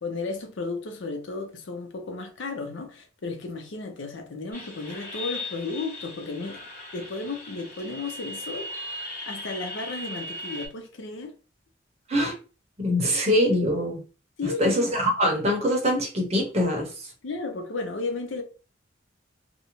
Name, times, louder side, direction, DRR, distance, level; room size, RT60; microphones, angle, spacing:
voice 1, 0.0-6.6 6.9-8.7 9.3-11.3 14.4-14.8 17.2-18.4, left 3 dB, 75° left, 0.5 m, -33 dB
sound 1, 4.5-10.7, left 1 dB, 15° left, 1.2 m, -38 dB
voice 2, 12.8-14.0 14.4-17.1, equal, 35° right, 0.7 m, -23 dB
2.5 x 2.1 x 2.9 m
head